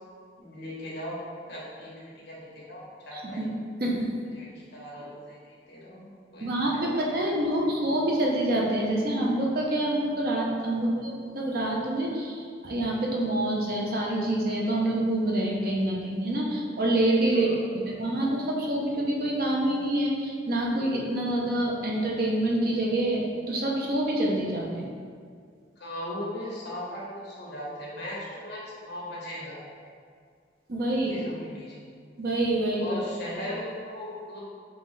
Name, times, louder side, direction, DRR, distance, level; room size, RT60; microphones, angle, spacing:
voice 1, 0.4-1.2 1.5-3.5 4.3-6.6 7.1-7.4 10.8-10.9 17.3-17.7 25.8-29.6 31.0-31.7 32.8-34.4, left 1 dB, 60° left, -6 dB, 1.3 m, -38 dB
voice 2, 3.1-3.5 3.8-4.1 6.4-24.9 30.7-31.2 32.2-33.0, right 1 dB, 50° right, -2 dB, 0.7 m, -26 dB
5.4 x 2.8 x 3.3 m, 2.1 s
head